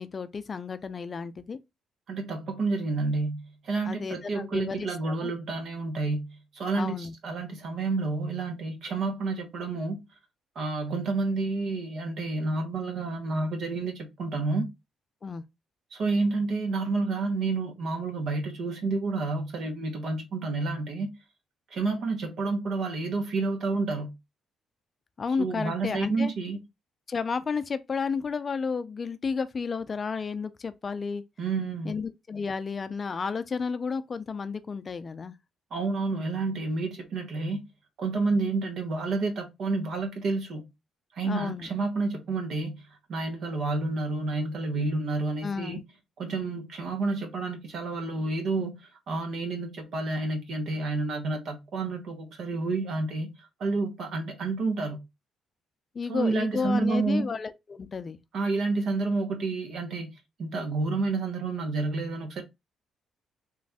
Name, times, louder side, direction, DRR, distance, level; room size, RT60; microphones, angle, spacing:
voice 1, 0.0-1.6 3.9-5.3 6.7-7.1 15.2-15.4 25.2-26.3 27.1-31.2 31.8-35.3 41.2-41.7 45.4-45.8 56.0-58.2, left 5 dB, 40° left, 0.4 m, -32 dB
voice 2, 2.1-10.0 10.5-14.7 15.9-21.1 21.7-24.1 25.4-26.6 31.4-32.0 35.7-37.6 38.0-40.7 41.1-42.7 43.1-45.8 46.2-53.3 53.6-55.0 56.1-57.3 58.3-60.1 60.4-62.4, right 3 dB, 65° right, 1.1 m, -29 dB
3.1 x 2.5 x 3.4 m
cardioid pair, 90°, 0 cm